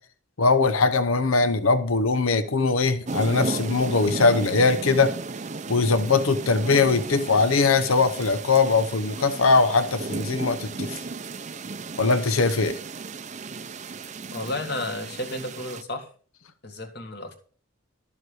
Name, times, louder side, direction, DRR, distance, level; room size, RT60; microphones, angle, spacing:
voice 1, 0.4-5.1 5.7-11.0 12.0-12.8, left 4 dB, 80° left, 0.9 m, -21 dB
sound 1, 3.1-15.8, right 3 dB, 35° right, 0.5 m, -35 dB
voice 2, 14.3-16.1 16.6-17.4, left 1 dB, 50° left, 1.9 m, -32 dB
12.5 x 7.2 x 4.8 m
head